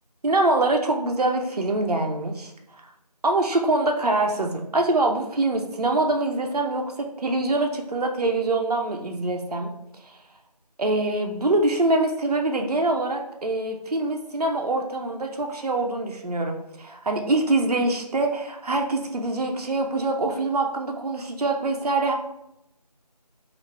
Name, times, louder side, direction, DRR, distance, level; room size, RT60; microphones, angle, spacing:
voice 1, 0.2-2.5 3.2-9.7 10.8-22.1, right 2 dB, 65° right, 2 dB, 0.5 m, -24 dB
3.1 x 2.4 x 3.2 m, 0.84 s
figure-of-eight pair, 170°, 21 cm